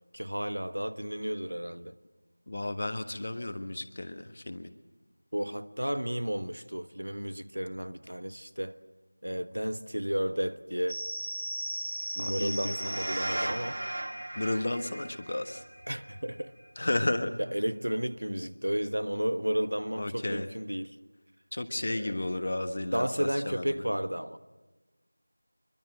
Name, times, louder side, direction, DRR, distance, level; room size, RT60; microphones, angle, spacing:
voice 1, 0.1-1.9 5.3-8.8 9.2-11.1 12.2-13.8 15.9-16.5 17.4-20.9 21.9-22.2 22.9-24.4, equal, 70° right, 1.3 m, -32 dB
voice 2, 2.5-4.7 12.2-13.0 14.4-15.6 16.8-17.3 20.0-20.5 21.5-23.9, left 1 dB, 30° left, 1.3 m, -33 dB
sound 1, 10.9-16.2 16.7-16.8, right 1 dB, 35° right, 3.0 m, -36 dB
24.5 x 23.0 x 7.6 m
figure-of-eight pair, 175°, 0 cm